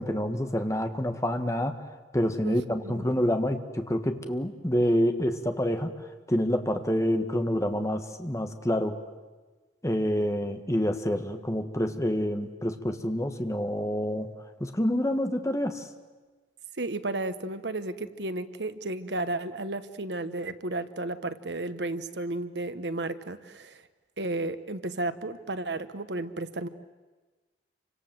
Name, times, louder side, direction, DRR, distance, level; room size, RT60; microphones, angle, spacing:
voice 1, 0.0-1.8 2.1-5.9 6.3-9.0 9.8-14.3 14.6-15.9, equal, 15° left, 7 dB, 1.7 m, -27 dB
voice 2, 16.8-23.8 24.2-26.7, right 2 dB, 85° right, 11 dB, 1.3 m, -33 dB
28.5 x 25.5 x 7.8 m, 1.3 s
head